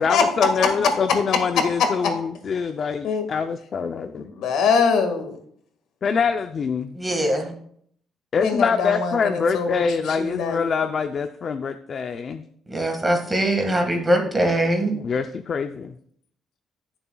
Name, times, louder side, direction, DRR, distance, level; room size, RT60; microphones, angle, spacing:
voice 1, 0.0-4.3 6.0-7.0 8.3-12.4 14.9-15.9, left 5 dB, 40° left, 8 dB, 0.5 m, -24 dB
voice 2, 4.2-5.3 8.4-9.7 10.2-10.8, left 5 dB, 75° left, 6 dB, 1.8 m, -23 dB
voice 3, 7.0-7.5 12.7-15.0, right 1 dB, 15° right, 3 dB, 1.8 m, -22 dB
20.5 x 7.0 x 2.3 m, 0.64 s
cardioid pair, 150°, 0 cm